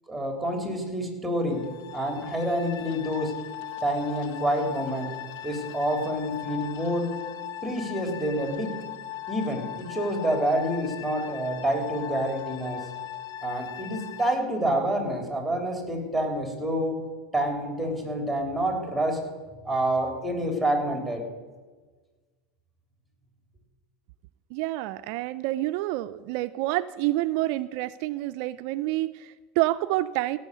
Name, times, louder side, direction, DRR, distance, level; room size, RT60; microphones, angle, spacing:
voice 1, 0.1-1.6 1.9-3.3 3.8-5.1 5.4-7.1 7.6-8.8 9.3-12.9 13.4-17.0 17.3-19.2 19.6-21.3, right 1 dB, ahead, 3 dB, 3.4 m, -28 dB
sound 1, 1.5-14.3, left 12 dB, 65° left, 1.2 m, -39 dB
voice 2, 24.5-30.4, right 17 dB, 65° right, 12 dB, 0.4 m, -28 dB
16.5 x 6.3 x 8.2 m, 1.3 s
supercardioid pair, 110°, 0 cm